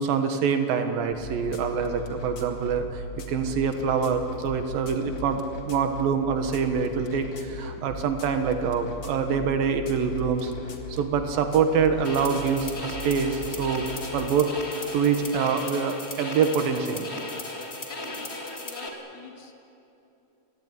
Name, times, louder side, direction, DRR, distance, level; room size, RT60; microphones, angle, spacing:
voice 1, 0.0-3.0 3.3-10.5 10.9-13.8 14.1-14.5 14.9-17.1 18.9-19.0, right 6 dB, 85° right, 6 dB, 3.2 m, -25 dB
sound 1, 1.1-14.4, left 1 dB, 40° left, 2.0 m, -38 dB
sound 2, 12.0-18.9, left 2 dB, 20° left, 2.2 m, -36 dB
voice 2, 17.9-19.6, left 5 dB, 60° left, 3 dB, 3.6 m, -46 dB
29.5 x 17.0 x 9.9 m, 2.9 s
omnidirectional pair, 4.0 m